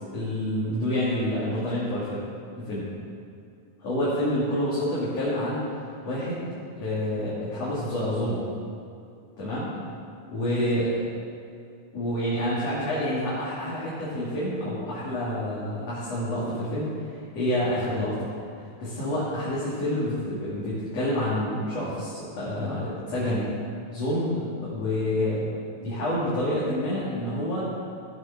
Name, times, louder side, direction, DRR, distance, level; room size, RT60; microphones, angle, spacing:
voice 1, 0.1-2.2 2.6-2.9 3.8-5.6 6.0-6.5 6.8-8.4 9.4-9.7 10.3-10.9 11.9-16.9 17.3-18.3 18.8-23.5 23.9-25.5 25.8-27.7, left 1 dB, 55° left, -10 dB, 3.9 m, -28 dB
17.0 x 8.1 x 6.2 m, 2.4 s
omnidirectional pair, 3.6 m